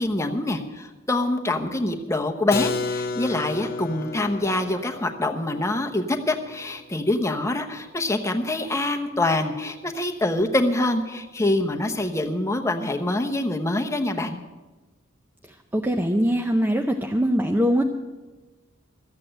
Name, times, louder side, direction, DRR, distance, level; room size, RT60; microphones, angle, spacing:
voice 1, 0.0-14.4, left 2 dB, 15° left, 4 dB, 0.9 m, -25 dB
Keyboard (musical), 2.5-8.1, left 3 dB, 45° left, 0.7 m, -33 dB
voice 2, 15.7-17.8, equal, 10° right, 3 dB, 0.6 m, -22 dB
14.0 x 8.4 x 7.7 m, 1.2 s
head